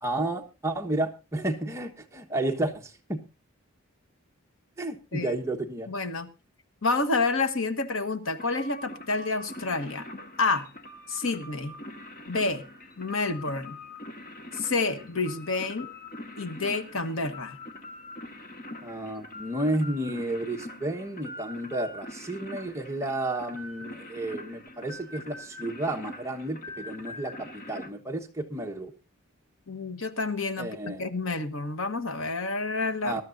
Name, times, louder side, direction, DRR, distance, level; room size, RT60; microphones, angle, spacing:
voice 1, 0.0-3.2 4.8-5.9 18.8-28.9 30.6-31.0 33.0-33.2, right 1 dB, 15° right, 3 dB, 1.3 m, -32 dB
voice 2, 5.9-6.3 6.8-10.1 10.4-10.7 11.1-11.8 12.3-12.6 13.0-13.8 14.5-15.9 16.4-17.6 29.7-33.2, left 3 dB, 65° left, 11 dB, 1.3 m, -29 dB
sound 1, 8.4-27.9, left 1 dB, 40° left, 1.6 m, -43 dB
22.0 x 12.5 x 2.6 m, 0.29 s
head